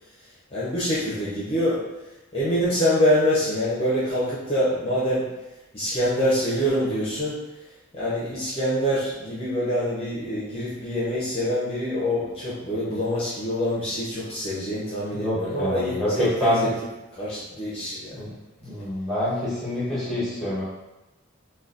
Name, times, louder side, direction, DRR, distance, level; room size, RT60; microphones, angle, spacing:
voice 1, 0.5-1.8 2.3-5.2 5.7-7.4 7.9-16.7 17.2-18.2, equal, 30° left, -9 dB, 0.6 m, -25 dB
voice 2, 15.1-16.7 18.1-18.3 18.6-20.6, left 1 dB, ahead, -8 dB, 1.0 m, -26 dB
3.8 x 2.2 x 2.4 m, 1.0 s
head